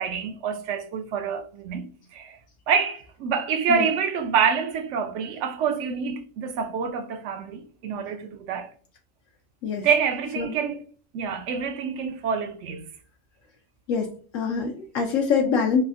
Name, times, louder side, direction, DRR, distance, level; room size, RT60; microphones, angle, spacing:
voice 1, 0.0-1.9 2.1-2.4 2.7-8.7 9.8-10.8 11.1-12.8, right 6 dB, 70° right, 0.8 m, -27 dB
voice 2, 13.9-15.8, left 6 dB, 75° left, 0.9 m, -24 dB
3.4 x 2.0 x 2.4 m
omnidirectional pair, 1.4 m